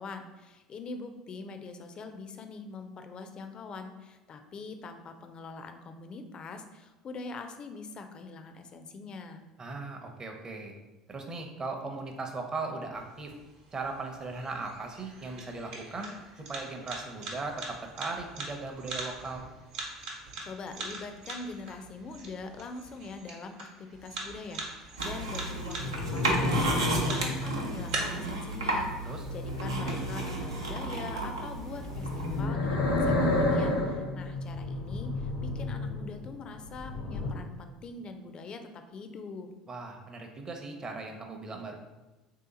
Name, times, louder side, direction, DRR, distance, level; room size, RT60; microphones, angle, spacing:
voice 1, 0.0-9.4 20.4-39.5, left 3 dB, 40° left, 7 dB, 0.4 m, -43 dB
voice 2, 9.6-10.7 11.1-13.3 13.7-19.5 29.0-29.3 39.7-41.8, right 3 dB, 30° right, 3 dB, 0.7 m, -38 dB
sound 1, 13.0-28.0, right 3 dB, 65° right, 1.0 m, -43 dB
sound 2, 25.0-32.4, right 2 dB, 90° right, 0.6 m, -33 dB
sound 3, 25.6-28.2 29.1-30.9 31.7-36.2 36.5-37.3, left 2 dB, 75° left, 0.7 m, -31 dB
3.4 x 2.8 x 3.9 m, 1.1 s
hypercardioid pair, 70°, 2 cm